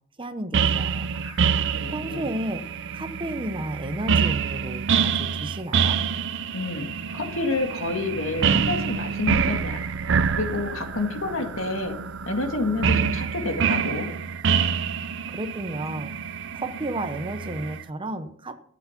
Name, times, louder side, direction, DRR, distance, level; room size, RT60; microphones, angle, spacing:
voice 1, 0.2-1.1 1.9-2.6 2.9-6.0 15.3-16.2 16.5-18.6, right 1 dB, 25° right, 10 dB, 0.8 m, -32 dB
sound 1, 0.5-17.8, right 6 dB, 60° right, 0.6 m, -26 dB
voice 2, 1.2-2.3 6.5-11.9 12.3-14.1, left 3 dB, 65° left, 4 dB, 2.0 m, -29 dB
12.5 x 8.2 x 5.8 m, 0.64 s
head